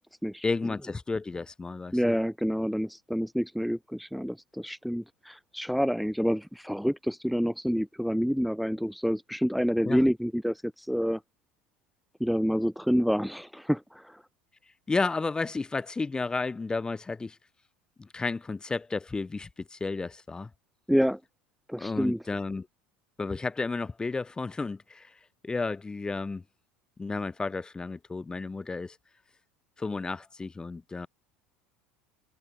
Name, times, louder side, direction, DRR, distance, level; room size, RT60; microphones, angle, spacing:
voice 1, 0.4-2.1 9.8-10.0 14.9-17.4 18.0-20.5 21.8-22.7 23.2-25.1 25.4-26.4 27.0-29.0 29.8-31.1, left 3 dB, 15° left, 4.1 m, -32 dB
voice 2, 1.9-11.2 12.2-14.2 20.9-21.2 21.7-22.2, equal, ahead, 3.3 m, -28 dB
figure-of-eight pair, 70°, 5 cm